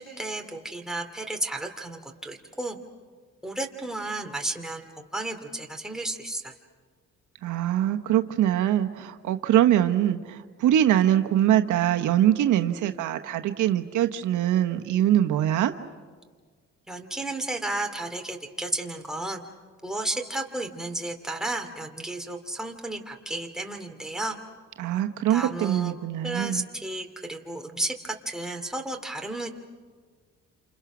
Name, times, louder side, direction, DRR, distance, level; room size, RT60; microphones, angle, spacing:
voice 1, 0.0-2.8 3.4-6.5 16.9-19.4 19.8-24.4 25.3-25.9 26.2-29.5, right 2 dB, ahead, 3 dB, 2.6 m, -33 dB
voice 2, 7.4-15.7 24.8-26.6, right 11 dB, 80° right, 7 dB, 1.1 m, -23 dB
28.5 x 28.0 x 6.1 m, 1.5 s
cardioid pair, 90°, 30 cm